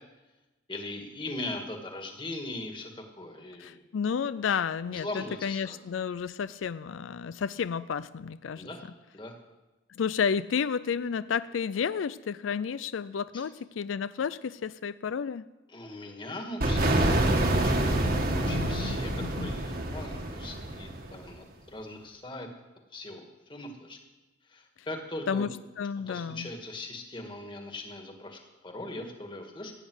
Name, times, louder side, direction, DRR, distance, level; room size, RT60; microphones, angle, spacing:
voice 1, 0.7-3.8 4.9-5.8 8.6-8.9 9.1-9.4 13.3-13.4 15.7-17.7 18.1-22.5 22.9-24.0 24.5-25.5 26.1-29.7, left 2 dB, 25° left, 3 dB, 2.0 m, -40 dB
voice 2, 3.6-8.7 10.0-15.4 18.4-19.5 25.3-25.5 25.8-26.5, left 6 dB, 85° left, 15 dB, 0.4 m, -31 dB
sound 1, 16.6-21.3, right 1 dB, 50° right, 1.8 m, -27 dB
16.0 x 9.2 x 8.0 m, 1.1 s
head